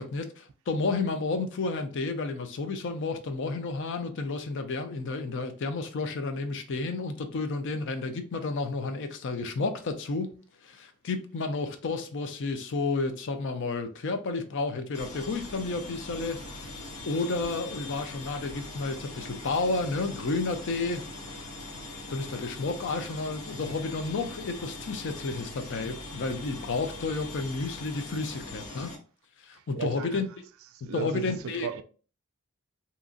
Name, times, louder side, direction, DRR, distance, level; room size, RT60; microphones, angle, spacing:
voice 1, 0.0-10.3 10.6-16.7 17.1-21.0 22.1-28.9 29.4-30.3 30.9-31.7, left 3 dB, 55° left, 0.4 m, -31 dB
sound 1, 14.9-29.0, left 2 dB, 85° left, 0.8 m, -41 dB
voice 2, 29.7-30.2 30.6-31.8, right 7 dB, 60° right, 0.3 m, -36 dB
2.8 x 2.5 x 2.4 m
head